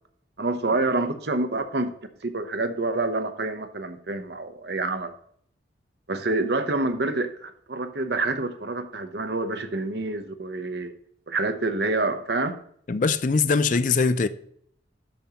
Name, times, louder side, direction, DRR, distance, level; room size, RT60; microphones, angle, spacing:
voice 1, 0.4-1.9 2.2-5.1 6.1-10.9 11.3-12.6, right 2 dB, 60° right, 0.9 m, -27 dB
voice 2, 12.9-14.3, left 4 dB, 45° left, 0.4 m, -22 dB
10.5 x 7.1 x 2.9 m
head